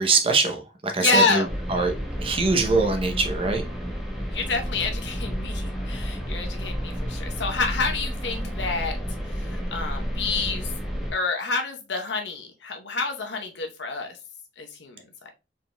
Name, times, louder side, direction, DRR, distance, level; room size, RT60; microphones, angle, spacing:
voice 1, 0.0-1.4 1.7-1.9 2.2-3.6, right 3 dB, 30° right, 0.7 m, -23 dB
voice 2, 1.0-1.5 4.2-9.0 9.4-10.7 11.1-14.2 14.6-15.0, left 3 dB, 80° left, 0.9 m, -28 dB
sound 1, 1.4-11.1, equal, ahead, 0.9 m, -31 dB
4.4 x 3.8 x 2.2 m
head